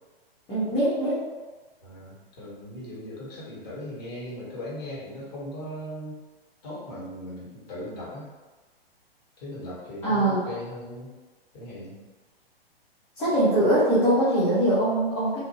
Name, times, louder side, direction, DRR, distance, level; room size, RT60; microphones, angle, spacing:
voice 1, 0.5-1.2 10.0-10.4 13.2-15.4, right 1 dB, 5° left, -12 dB, 0.3 m, -22 dB
voice 2, 1.8-6.2 6.6-8.3 9.4-11.1 11.5-12.0, left 1 dB, 40° left, -7 dB, 1.4 m, -38 dB
2.6 x 2.6 x 2.9 m, 1.2 s
figure-of-eight pair, 115°, 31 cm